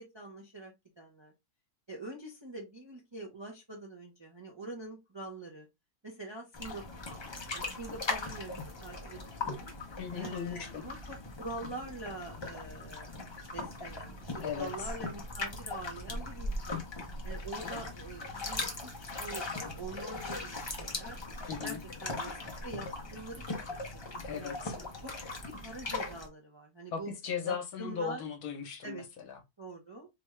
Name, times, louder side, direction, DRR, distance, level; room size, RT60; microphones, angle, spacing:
voice 1, 0.0-1.3 1.9-5.7 6.0-6.8 7.5-9.7 10.1-13.1 13.5-16.8 17.2-18.9 19.2-19.4 19.7-21.2 21.6-23.4 24.3-24.6 25.0-25.1 25.4-27.1 27.4-28.3 28.8-29.0 29.6-30.1, right 2 dB, 35° right, 0.4 m, -45 dB
sound 1, 6.5-26.3, left 2 dB, 35° left, 0.4 m, -39 dB
voice 2, 10.0-10.8 14.4-14.7 21.5-21.8 24.3-24.8 26.9-29.4, left 6 dB, 70° left, 1.3 m, -37 dB
3.4 x 2.4 x 3.1 m
omnidirectional pair, 1.6 m